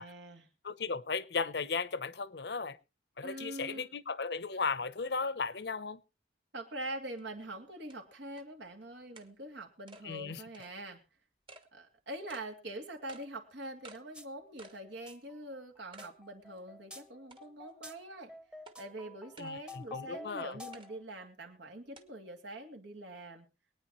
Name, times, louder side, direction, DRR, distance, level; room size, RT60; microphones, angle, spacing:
voice 1, 0.0-0.5 3.2-3.9 6.5-11.0 11.7-18.3 18.8-23.5, right 1 dB, 85° right, 2.7 m, -44 dB
voice 2, 0.6-2.8 3.2-6.0 10.0-10.4 19.4-20.6, left 4 dB, 65° left, 0.8 m, -36 dB
sound 1, 7.2-7.3 7.9-8.0 8.4-8.5 9.2-9.3 9.9-10.0 10.5-10.7 11.5-11.7 12.3-12.5 13.1-13.3 13.8-14.0 14.6-14.8 15.2-15.3 15.9-16.1 16.6-16.7 17.3-17.7 18.7-18.8 19.4-19.5 20.7-20.9 22.0-22.1, right 2 dB, 25° right, 1.2 m, -52 dB
sound 2, 14.1-14.3 14.6-21.0, left 2 dB, 5° right, 0.9 m, -50 dB
23.5 x 9.4 x 3.1 m
head